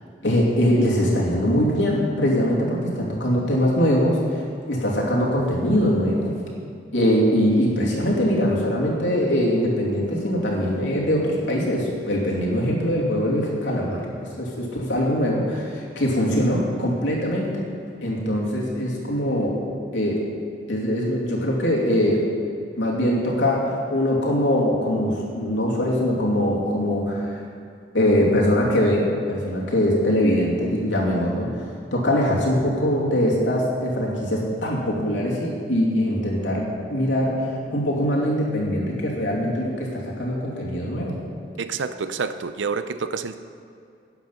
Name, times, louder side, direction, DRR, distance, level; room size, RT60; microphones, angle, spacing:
voice 1, 0.2-6.3 6.9-14.1 14.4-17.6 18.0-19.5 19.9-20.2 20.7-22.2 22.8-27.4 27.9-41.2, equal, 85° left, -3 dB, 2.7 m, -22 dB
voice 2, 41.6-43.4, right 5 dB, 85° right, 12 dB, 0.6 m, -28 dB
12.0 x 9.3 x 5.6 m, 2.4 s
head